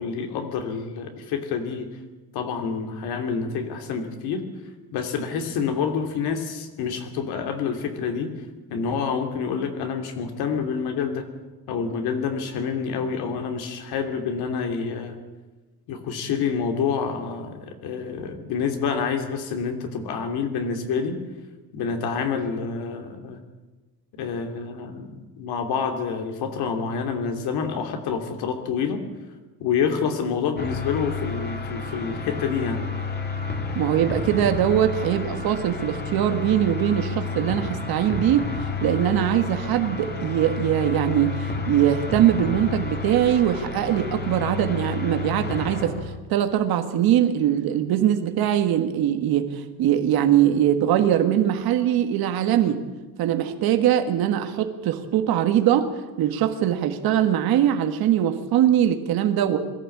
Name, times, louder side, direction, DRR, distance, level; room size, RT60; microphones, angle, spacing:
voice 1, 0.0-1.9 2.3-4.4 4.9-8.3 8.7-11.3 11.7-15.2 15.9-21.2 21.7-23.4 24.2-29.0 29.6-32.8, left 6 dB, 85° left, 5 dB, 3.0 m, -27 dB
sound 1, 30.6-46.2, left 4 dB, 25° left, 2.0 m, -31 dB
voice 2, 33.7-45.9 46.3-52.8 53.2-55.9 56.2-59.6, right 11 dB, 70° right, 7 dB, 1.7 m, -22 dB
22.0 x 14.5 x 8.5 m, 1.2 s
cardioid pair, 160°, 38 cm